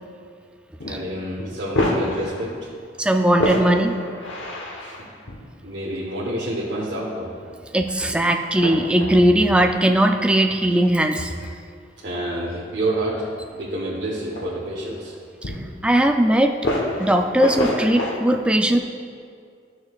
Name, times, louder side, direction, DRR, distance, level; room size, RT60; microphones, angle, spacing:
sound 1, 0.8-1.0 1.4-2.7 3.3-5.4 6.5-7.1 7.4-7.5 8.1-8.2 8.6-9.3 9.7-9.9 10.9-11.0 11.9-12.2 13.0-13.1 13.5-13.6 14.1-15.2 15.4-16.0 16.6-18.2, left 1 dB, 75° left, 1.0 m, -27 dB
voice 1, 0.8-2.7 4.8-5.1 5.6-7.4 12.0-15.1, right 1 dB, 65° right, -6 dB, 1.1 m, -28 dB
voice 2, 3.0-4.0 7.7-11.3 15.8-16.5 17.0-18.8, right 1 dB, 5° right, 4 dB, 0.3 m, -18 dB
13.0 x 6.4 x 2.4 m, 2.2 s
head